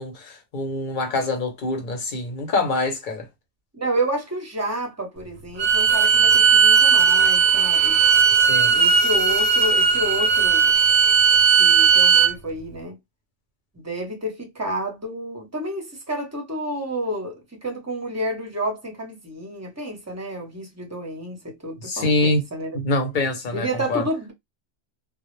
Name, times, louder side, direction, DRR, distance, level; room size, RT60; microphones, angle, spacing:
voice 1, 0.0-3.3 8.4-8.7 21.8-22.4 22.7-24.0, left 2 dB, 55° left, 0.8 m, -25 dB
voice 2, 3.7-8.0 8.7-10.8 11.6-13.0 13.7-22.8 23.5-24.3, right 1 dB, 20° right, 0.6 m, -30 dB
Bowed string instrument, 5.6-12.3, right 6 dB, 80° right, 0.9 m, -17 dB
2.0 x 2.0 x 3.0 m
omnidirectional pair, 1.1 m